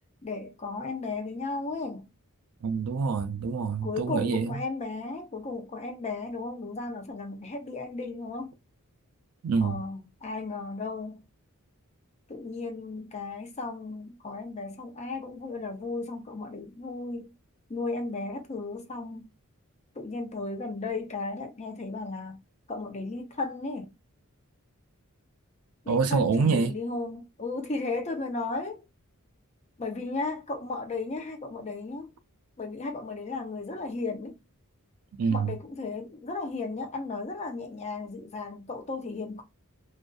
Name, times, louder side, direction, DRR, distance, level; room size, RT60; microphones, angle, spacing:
voice 1, 0.2-2.1 3.8-8.5 9.6-11.3 12.3-17.3 17.7-19.3 20.0-22.4 22.7-23.9 25.8-28.8 29.8-32.1 32.6-34.4 35.3-39.4, left 3 dB, 30° left, 0.6 m, -35 dB
voice 2, 2.6-4.6 9.4-9.8 25.9-26.7 35.2-35.6, right 5 dB, 85° right, 0.4 m, -26 dB
2.5 x 2.5 x 2.2 m
head